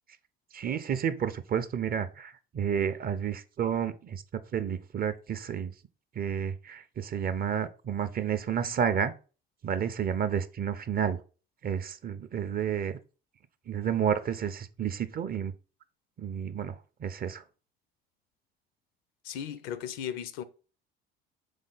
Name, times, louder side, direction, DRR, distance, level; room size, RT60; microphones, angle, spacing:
voice 1, 0.5-4.2 4.5-5.7 6.2-9.1 9.6-11.2 11.6-13.0 13.7-15.5 16.2-17.4, right 8 dB, 30° right, 0.4 m, -31 dB
voice 2, 19.2-20.4, left 9 dB, 65° left, 0.5 m, -36 dB
3.7 x 3.3 x 3.8 m
hypercardioid pair, 55°, 29 cm